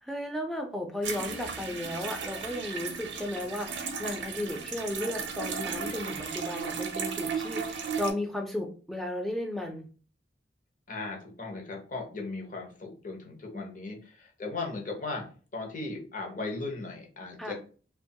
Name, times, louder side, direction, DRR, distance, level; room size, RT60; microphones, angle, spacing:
voice 1, 0.0-9.9 13.5-13.8 17.4-17.5, left 1 dB, ahead, 2 dB, 0.4 m, -35 dB
sound 1, 1.0-8.1, right 6 dB, 75° right, 0.5 m, -35 dB
voice 2, 10.9-15.3 15.5-17.5, left 3 dB, 45° left, 0 dB, 0.7 m, -37 dB
2.9 x 2.2 x 2.7 m, 0.39 s
head